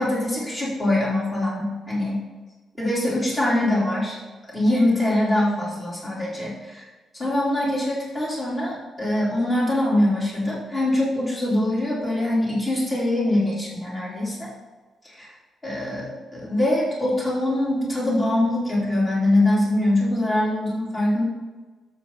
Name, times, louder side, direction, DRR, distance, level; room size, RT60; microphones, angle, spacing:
voice 1, 0.0-2.2 2.8-4.2 4.5-6.8 7.1-14.5 15.0-15.3 15.6-21.2, left 1 dB, 20° left, -6 dB, 3.6 m, -23 dB
12.5 x 6.9 x 4.1 m, 1.3 s
cardioid pair, 170°, 0 cm